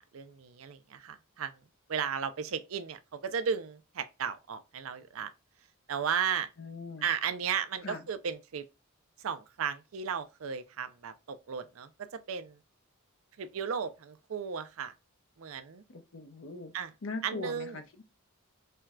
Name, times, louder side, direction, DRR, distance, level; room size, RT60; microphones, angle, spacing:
voice 1, 0.1-1.5 1.9-5.3 5.9-6.5 7.0-8.6 9.2-11.9 12.3-12.6 13.4-14.9 15.4-15.8 16.7-16.9 17.2-17.8, right 7 dB, 70° right, 0.5 m, -35 dB
voice 2, 6.6-7.0 7.8-8.0 15.9-16.7 17.0-18.0, left 3 dB, 65° left, 0.7 m, -41 dB
4.4 x 2.2 x 2.4 m
head